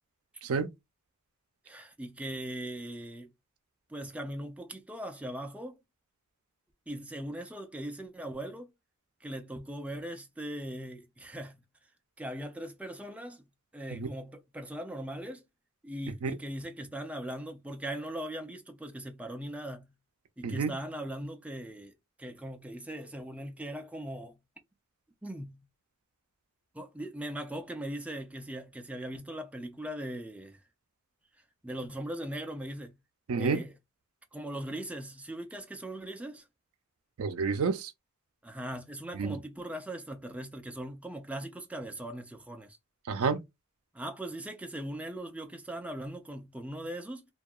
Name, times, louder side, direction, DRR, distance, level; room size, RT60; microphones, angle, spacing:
voice 1, 1.7-3.3 3.9-5.8 6.9-8.7 9.2-11.6 12.2-13.4 13.7-15.4 15.8-19.9 20.4-21.9 22.2-24.4 25.2-25.6 26.7-30.6 31.6-32.9 33.3-33.7 34.3-36.4 38.4-42.8 43.9-47.3, right 1 dB, 5° right, 0.3 m, -40 dB
voice 2, 33.3-33.6 37.2-37.9 39.1-39.4 43.1-43.4, right 5 dB, 80° right, 0.4 m, -29 dB
2.7 x 2.2 x 2.2 m
head